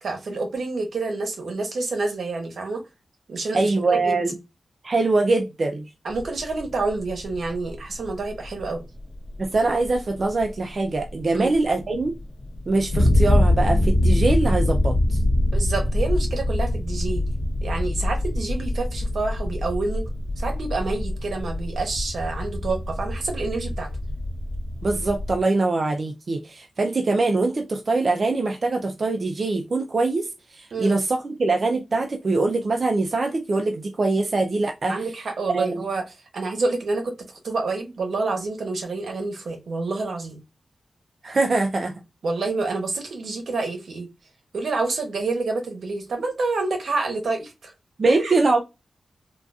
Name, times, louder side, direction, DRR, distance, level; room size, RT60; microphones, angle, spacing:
voice 1, 0.0-2.8 3.3-4.2 6.0-8.8 11.3-11.6 15.5-17.2 17.6-20.1 20.4-23.9 30.7-31.0 34.9-36.0 36.3-40.4 42.2-44.1 44.5-47.7 48.0-48.4, right 3 dB, 80° right, 0.9 m, -28 dB
voice 2, 3.5-4.4 4.8-5.9 9.4-12.1 12.7-15.2 24.8-35.0 35.5-35.8 41.2-41.9 48.0-48.6, right 3 dB, 45° right, 0.4 m, -23 dB
sound 1, 6.1-25.4, left 1 dB, 50° left, 0.8 m, -24 dB
3.7 x 2.4 x 2.3 m
wide cardioid pair, 125°, 0 cm